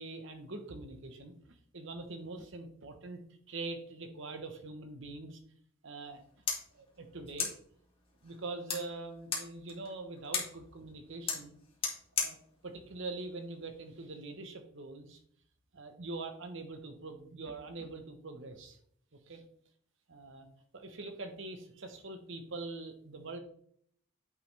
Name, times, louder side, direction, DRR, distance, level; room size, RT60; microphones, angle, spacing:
voice 1, 0.0-3.2 3.5-5.4 5.8-6.2 6.7-7.5 8.2-11.5 12.2-12.4 12.6-15.2 15.7-18.8 19.3-19.4 20.1-20.5 20.7-23.4, right 3 dB, 60° right, 6 dB, 1.1 m, -43 dB
sound 1, 6.0-14.1, left 5 dB, 25° left, 1.6 m, -40 dB
8.5 x 5.2 x 3.3 m, 0.63 s
head